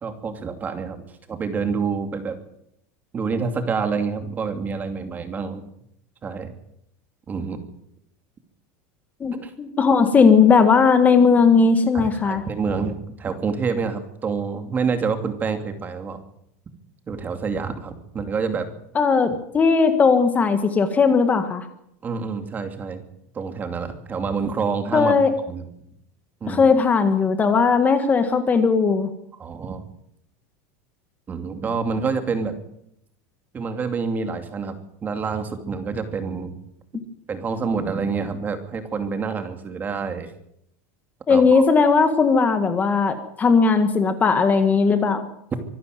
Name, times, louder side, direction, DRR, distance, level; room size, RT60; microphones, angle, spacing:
voice 1, 0.0-1.0 1.3-2.4 3.1-5.6 6.2-6.6 7.3-7.6 9.4-9.5 11.9-16.2 17.1-18.7 22.0-23.0 23.3-25.6 26.4-26.6 29.4-29.8 31.3-32.5 33.5-36.5 37.3-40.3 41.3-41.7, right 5 dB, 20° right, 8 dB, 2.6 m, -27 dB
voice 2, 9.2-12.4 19.0-21.7 24.9-25.3 26.5-29.1 41.3-45.3, left 5 dB, 20° left, 8 dB, 1.8 m, -17 dB
25.0 x 11.5 x 9.3 m, 0.76 s
supercardioid pair, 150°, 8 cm